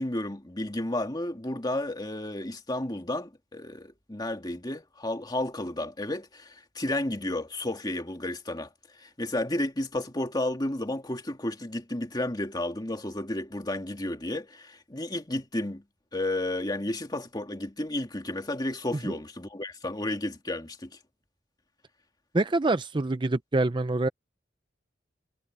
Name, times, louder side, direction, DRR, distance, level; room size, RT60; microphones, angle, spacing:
voice 1, 0.0-8.7 9.0-15.8 16.1-20.9, left 1 dB, 25° left, 2.3 m, -32 dB
voice 2, 22.3-24.1, right 2 dB, 25° right, 0.5 m, -25 dB
head